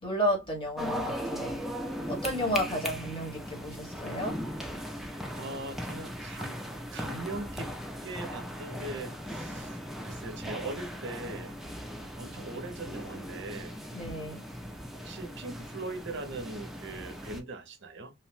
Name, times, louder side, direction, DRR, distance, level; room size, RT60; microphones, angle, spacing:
voice 1, 0.0-1.6 2.1-4.4 13.9-14.4, equal, 25° left, 1.2 m, -32 dB
sound 1, 0.8-17.4, equal, ahead, 0.3 m, -38 dB
voice 2, 5.3-6.6 6.9-7.7 8.0-9.8 10.0-11.6 12.2-13.8 15.0-18.1, right 2 dB, 60° right, 0.5 m, -40 dB
2.7 x 2.0 x 3.0 m
head